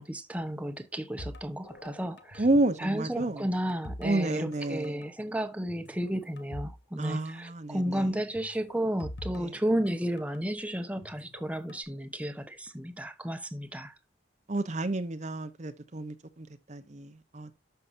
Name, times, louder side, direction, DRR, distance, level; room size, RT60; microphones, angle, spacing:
voice 1, 0.0-2.5 2.8-13.9, right 1 dB, 10° right, 0.9 m, -33 dB
sound 1, 1.2-2.7 3.0-4.6 4.8-5.1 5.7-6.8 7.1-7.2 8.4-10.4 11.0-11.8, left 1 dB, 70° left, 1.3 m, -44 dB
voice 2, 2.4-3.4 4.0-5.0 7.0-8.0 14.5-17.5, right 2 dB, 40° right, 0.8 m, -30 dB
12.0 x 5.7 x 2.6 m
head